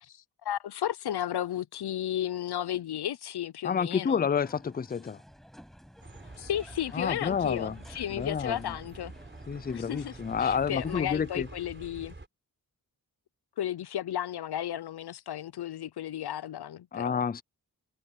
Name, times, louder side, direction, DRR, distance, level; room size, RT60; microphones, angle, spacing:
voice 1, 0.0-4.3 6.4-9.1 9.7-10.1 10.4-12.1 13.6-17.2, left 11 dB, 85° left, 0.6 m, -34 dB
voice 2, 3.6-5.2 6.9-7.8 8.2-8.6 9.5-11.5 16.9-17.4, left 6 dB, 25° left, 0.4 m, -29 dB
sound 1, 4.4-11.1, equal, ahead, 7.7 m, -54 dB
Bus, 6.0-12.3, right 2 dB, 30° right, 3.8 m, -47 dB
wide cardioid pair, 90°, 38 cm